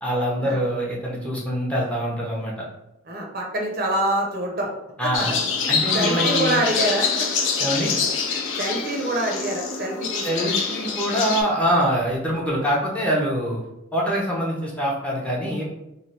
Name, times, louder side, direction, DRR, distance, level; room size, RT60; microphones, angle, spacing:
voice 1, 0.0-2.7 5.0-5.3 5.7-6.6 7.6-7.9 10.2-13.6 13.9-15.7, equal, 5° left, -4 dB, 0.6 m, -24 dB
voice 2, 3.1-4.7 5.0-5.4 5.6-7.3 8.6-10.5, right 1 dB, 45° right, 0 dB, 0.6 m, -26 dB
sound 1, 5.1-11.4, left 5 dB, 70° left, 0.5 m, -25 dB
3.1 x 2.2 x 4.2 m, 0.89 s
head